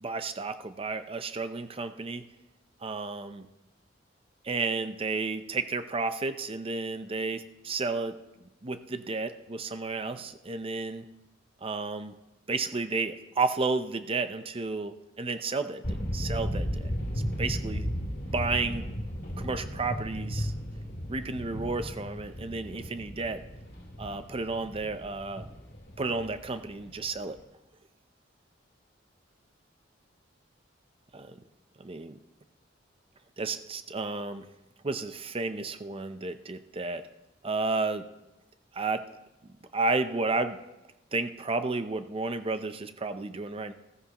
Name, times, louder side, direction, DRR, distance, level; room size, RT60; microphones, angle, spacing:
voice 1, 0.0-2.2 2.8-3.4 4.4-8.2 8.6-11.0 11.6-12.1 12.5-15.8 16.1-16.9 17.4-17.9 18.3-18.8 19.4-20.5 21.1-23.4 24.0-25.5 26.0-27.4 31.1-31.4 31.8-32.2 33.4-34.5 34.8-37.1 37.4-38.0 38.7-39.0 39.7-40.6 41.1-43.7, right 3 dB, 30° right, 10 dB, 0.6 m, -32 dB
sound 1, 15.8-27.3, equal, 50° left, 2.2 m, -35 dB
15.5 x 14.5 x 3.0 m, 1.0 s
head